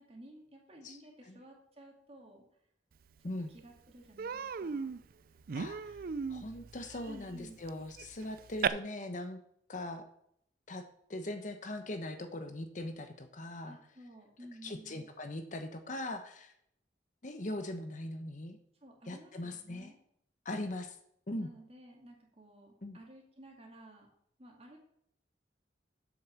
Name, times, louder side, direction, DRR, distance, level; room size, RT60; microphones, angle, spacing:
voice 1, 0.1-2.4 3.2-4.9 7.0-7.6 13.7-15.1 18.8-20.0 21.4-24.1 24.4-24.8, right 1 dB, 35° right, 0 dB, 2.3 m, -54 dB
Human voice, 3.2-3.3 3.6-3.8 4.2-8.7, right 6 dB, 55° right, 0.4 m, -37 dB
voice 2, 5.5-6.0 6.3-9.4 9.7-10.1 10.7-10.8 11.1-13.8 14.6-16.5 17.2-18.6 19.1-19.9 20.4-21.0 21.3-21.5 22.8-23.0, left 1 dB, 45° left, 7 dB, 1.0 m, -40 dB
7.8 x 6.4 x 7.2 m, 0.71 s
head